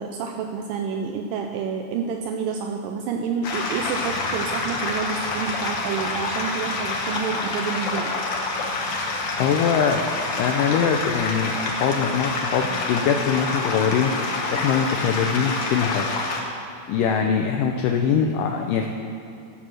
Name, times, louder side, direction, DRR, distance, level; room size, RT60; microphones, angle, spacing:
voice 1, 0.0-8.1, right 6 dB, 85° right, 3 dB, 2.0 m, -29 dB
sound 1, 3.4-16.4, left 3 dB, 65° left, 1.4 m, -27 dB
voice 2, 9.4-10.1 10.4-16.1 16.9-18.9, left 7 dB, 85° left, 3 dB, 1.9 m, -23 dB
14.5 x 7.0 x 6.2 m, 2.8 s
omnidirectional pair, 4.5 m